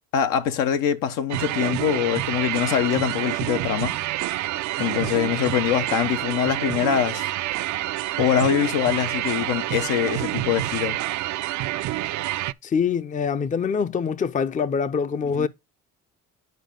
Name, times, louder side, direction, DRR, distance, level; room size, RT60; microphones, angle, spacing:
voice 1, 0.1-4.0 4.8-7.3 8.2-11.0 15.3-15.5, left 9 dB, 85° left, 0.9 m, -23 dB
sound 1, 1.3-12.5, right 15 dB, 60° right, 0.5 m, -28 dB
voice 2, 12.6-15.5, left 6 dB, 25° left, 0.5 m, -24 dB
9.4 x 4.7 x 3.7 m
cardioid pair, 85°, 33 cm